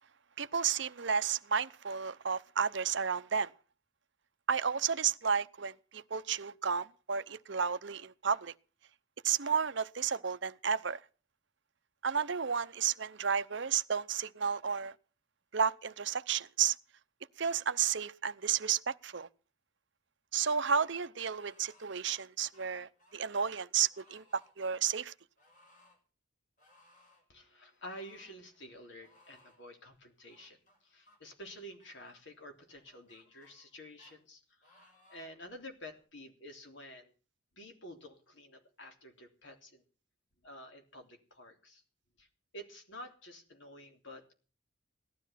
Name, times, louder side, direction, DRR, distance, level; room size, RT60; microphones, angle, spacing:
voice 1, 0.4-3.5 4.5-8.5 9.2-11.0 12.0-14.9 15.5-16.7 17.4-19.3 20.3-25.1, right 7 dB, 60° right, 0.7 m, -32 dB
sound 1, 21.4-22.2 22.5-23.5 23.9-24.5 25.4-26.0 26.6-27.3 27.9-28.4 29.0-29.6 30.3-31.2 31.8-32.2 32.9-33.7 34.0-34.1 34.6-35.4 36.0-36.1, left 1 dB, 35° left, 6.1 m, -64 dB
voice 2, 27.3-37.1 37.6-39.8 40.4-41.8 42.2-42.3 42.5-44.3, equal, 60° left, 3.4 m, -50 dB
17.5 x 12.5 x 5.8 m
head